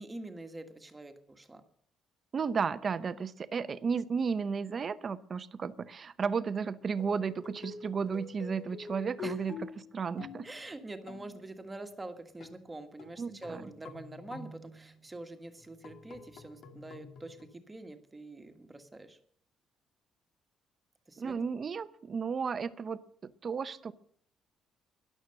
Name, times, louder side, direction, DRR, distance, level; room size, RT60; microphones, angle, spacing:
voice 1, 0.0-1.6 9.2-9.4 10.4-19.2 21.1-21.3, right 2 dB, 15° right, 7 dB, 1.6 m, -45 dB
voice 2, 2.3-10.5 13.2-13.6 21.2-23.9, right 5 dB, 35° right, 14 dB, 0.8 m, -34 dB
sound 1, 7.0-11.5 12.4-12.7 13.0-15.1 15.6-17.5, left 5 dB, 60° left, 2.0 m, -47 dB
13.0 x 11.0 x 6.6 m, 0.63 s
cardioid pair, 140°, 0 cm